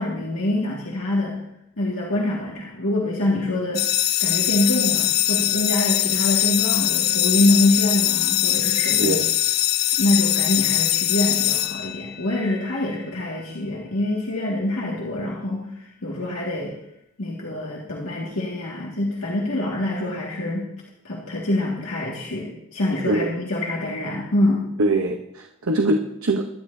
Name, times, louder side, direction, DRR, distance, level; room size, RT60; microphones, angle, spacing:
voice 1, 0.0-1.4 1.8-3.9 4.2-9.2 10.0-16.8 17.2-20.7 21.0-24.7, left 1 dB, 75° left, -4 dB, 2.1 m, -25 dB
sound 1, 3.7-12.4, left 13 dB, 50° left, 0.5 m, -22 dB
voice 2, 24.8-26.4, right 2 dB, 80° right, 3 dB, 1.0 m, -22 dB
23.0 x 11.0 x 2.8 m, 0.82 s
head